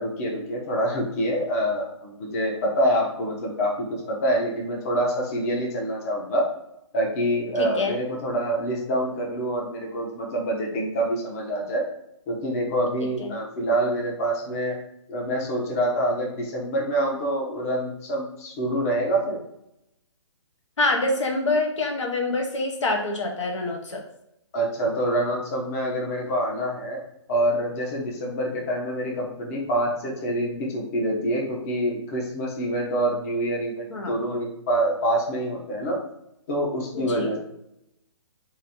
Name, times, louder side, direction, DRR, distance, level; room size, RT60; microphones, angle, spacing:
voice 1, 0.0-6.5 6.9-11.8 12.3-14.8 15.1-19.4 24.5-27.0 27.3-36.0 36.5-37.4, right 1 dB, 30° left, -2 dB, 0.8 m, -26 dB
voice 2, 7.6-8.0 13.2-13.4 20.8-24.0 33.9-34.2 36.9-37.3, left 2 dB, 70° left, 2 dB, 0.8 m, -26 dB
3.0 x 2.7 x 4.1 m, 0.83 s
hypercardioid pair, 155°, 16 cm